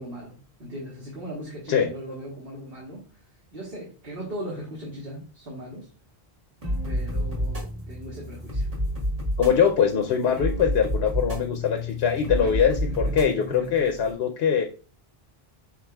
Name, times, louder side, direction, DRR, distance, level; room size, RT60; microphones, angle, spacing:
voice 1, 0.0-5.9 6.8-8.7 12.4-12.6 12.9-13.3, equal, 65° right, -4 dB, 1.5 m, -39 dB
sound 1, 6.6-14.1, equal, 35° right, 1.4 m, -30 dB
voice 2, 9.4-14.6, left 7 dB, 80° left, 5 dB, 0.9 m, -22 dB
6.2 x 3.5 x 2.2 m, 0.36 s
omnidirectional pair, 1.1 m